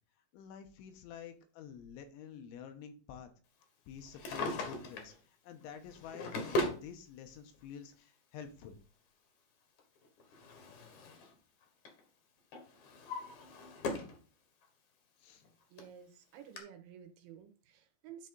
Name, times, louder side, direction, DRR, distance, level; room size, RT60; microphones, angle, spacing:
voice 1, 0.3-3.3 3.9-8.8 15.2-15.4, left 7 dB, 80° left, 7 dB, 3.2 m, -49 dB
Drawer open or close, 4.0-5.2 5.9-6.8 7.9-8.0 9.8-11.3 11.6-12.0 12.5-14.2 14.6-14.7 15.4-15.5 15.8-15.9 16.6-16.7, left 1 dB, 60° left, 2.0 m, -38 dB
voice 2, 15.7-18.3, right 9 dB, 75° right, 7 dB, 3.2 m, -53 dB
11.0 x 4.1 x 3.9 m, 0.36 s
omnidirectional pair, 5.7 m